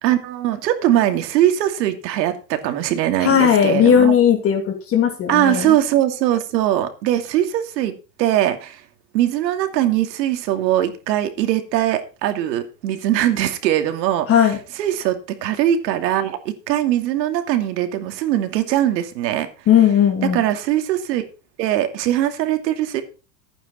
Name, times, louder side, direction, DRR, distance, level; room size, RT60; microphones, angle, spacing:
voice 1, 0.0-4.1 5.3-8.8 9.1-14.3 14.8-19.5 20.3-21.3 21.6-23.0, right 12 dB, 85° right, 7 dB, 2.7 m, -21 dB
voice 2, 3.2-5.8 14.3-14.6 19.7-20.4, left 8 dB, 25° left, 3 dB, 2.6 m, -16 dB
15.5 x 9.0 x 4.3 m, 0.33 s
supercardioid pair, 160°, 49 cm